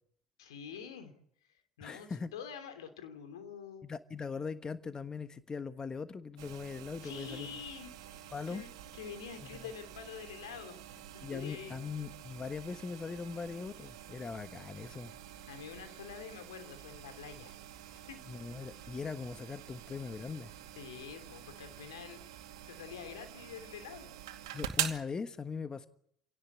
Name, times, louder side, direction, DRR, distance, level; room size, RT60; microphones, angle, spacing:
voice 1, 0.4-1.1 1.8-3.9 7.0-11.8 15.5-17.6 17.9-18.2 20.7-22.2 22.7-24.1, left 7 dB, 75° left, 9 dB, 3.0 m, -47 dB
voice 2, 1.8-2.3 3.8-7.5 8.3-8.6 11.2-15.1 18.3-20.5 24.5-25.9, left 5 dB, 25° left, 11 dB, 1.3 m, -40 dB
sound 1, 6.4-25.0, right 12 dB, 75° right, 2.3 m, -45 dB
28.0 x 17.5 x 8.4 m, 0.70 s
figure-of-eight pair, 60°, 3 cm